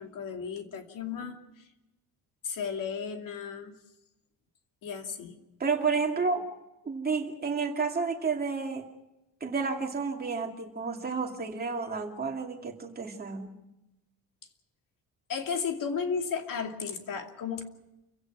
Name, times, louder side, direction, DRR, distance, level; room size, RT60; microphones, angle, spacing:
voice 1, 0.0-1.4 2.4-3.7 4.8-5.4 15.3-17.6, left 6 dB, 55° left, 4 dB, 2.6 m, -34 dB
voice 2, 5.6-6.4 6.8-8.9 9.4-13.5, right 4 dB, 25° right, 2 dB, 2.5 m, -31 dB
29.0 x 16.5 x 6.1 m, 0.93 s
cardioid pair, 170°, 38 cm